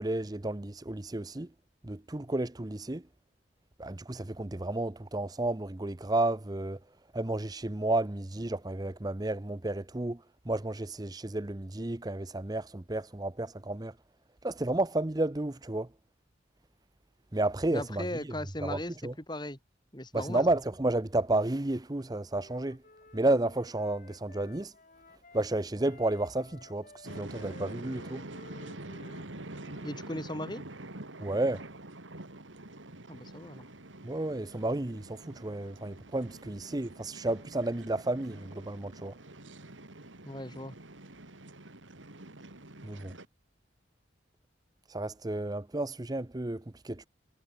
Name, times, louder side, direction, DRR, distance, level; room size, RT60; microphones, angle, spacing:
voice 1, 0.0-1.5 1.8-3.0 3.8-6.8 7.1-13.9 14.4-15.9 17.3-18.1 18.6-19.1 20.1-22.8 23.1-24.7 25.3-28.2 31.2-31.7 34.0-39.1 42.8-43.1 44.9-47.1, right 2 dB, 20° right, 0.7 m, -32 dB
voice 2, 17.7-19.6 19.9-20.5 29.8-30.6 33.1-33.7 40.2-40.8, left 1 dB, 25° left, 6.0 m, -38 dB
Wind instrument woodwind instrument, 21.8-25.5 25.8-29.9, left 2 dB, 45° left, 4.6 m, -55 dB
sound 1, 27.0-43.3, right 2 dB, 85° right, 2.7 m, -46 dB
head